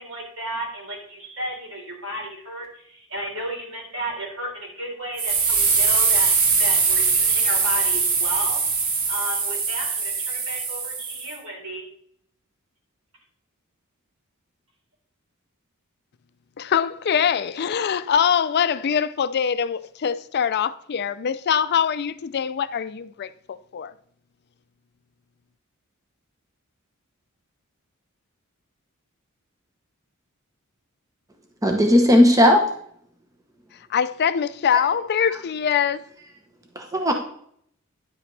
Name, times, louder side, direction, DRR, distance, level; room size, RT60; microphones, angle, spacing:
voice 1, 0.0-11.9, equal, 70° right, 3.9 m, -34 dB
sound 1, 5.2-11.3, right 5 dB, 90° right, 1.4 m, -22 dB
voice 2, 16.6-23.9 33.9-36.1, left 7 dB, 50° left, 0.4 m, -23 dB
voice 3, 31.6-32.7 36.7-37.1, left 1 dB, 15° right, 1.0 m, -16 dB
10.5 x 7.8 x 3.3 m
head